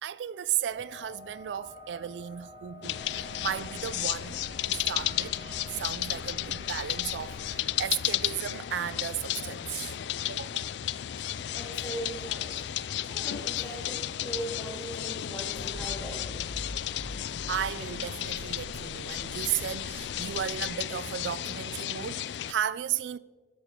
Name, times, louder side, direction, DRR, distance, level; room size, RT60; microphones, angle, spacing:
voice 1, 0.0-4.4 4.6-10.0 10.3-10.7 17.3-23.2, right 10 dB, 80° right, 0.3 m, -35 dB
sound 1, 0.7-14.1, left 2 dB, 60° left, 2.7 m, -51 dB
sound 2, 2.8-22.5, left 12 dB, 75° left, 0.4 m, -33 dB
Motor vehicle (road) / Engine starting / Idling, 3.0-10.7 10.9-20.8, equal, 60° right, 3.4 m, -48 dB
voice 2, 11.1-12.7 13.0-16.5 20.1-20.2, right 1 dB, 15° left, 2.5 m, -40 dB
13.5 x 12.0 x 3.7 m
head